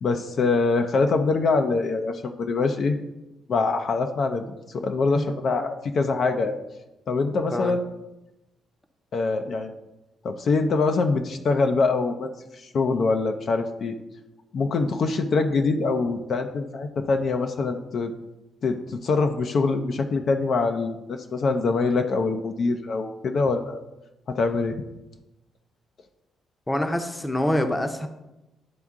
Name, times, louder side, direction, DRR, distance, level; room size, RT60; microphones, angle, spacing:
voice 1, 0.0-3.0 3.5-4.4 4.7-6.6 7.1-7.8 9.1-9.7 10.2-14.0 14.5-18.1 18.6-23.8 24.3-24.7, left 3 dB, 55° left, 6 dB, 0.5 m, -24 dB
voice 2, 26.7-28.1, left 1 dB, 15° left, 6 dB, 0.7 m, -25 dB
10.5 x 3.5 x 3.6 m, 0.97 s
cardioid pair, 90°, 0 cm